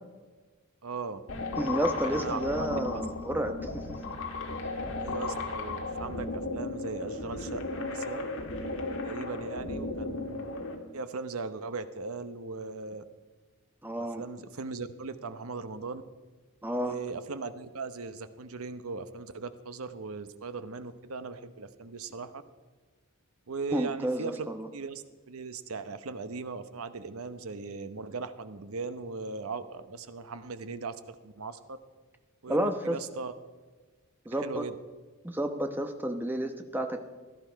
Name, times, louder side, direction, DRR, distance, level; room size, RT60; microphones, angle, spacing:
voice 1, 0.8-1.2 2.0-2.8 5.0-8.3 9.0-10.7 10.9-13.0 14.0-16.0 16.8-22.4 23.5-24.5 24.7-31.8 32.4-33.3 34.3-34.7, right 4 dB, 75° right, 11 dB, 0.8 m, -38 dB
sound 1, 1.3-10.8, left 3 dB, 65° left, 1.7 m, -35 dB
voice 2, 1.6-4.0 13.8-14.2 16.6-17.0 23.7-24.7 32.5-33.0 34.2-34.6 35.2-37.1, right 1 dB, 10° right, 6 dB, 1.0 m, -31 dB
16.5 x 12.0 x 4.6 m, 1.3 s
head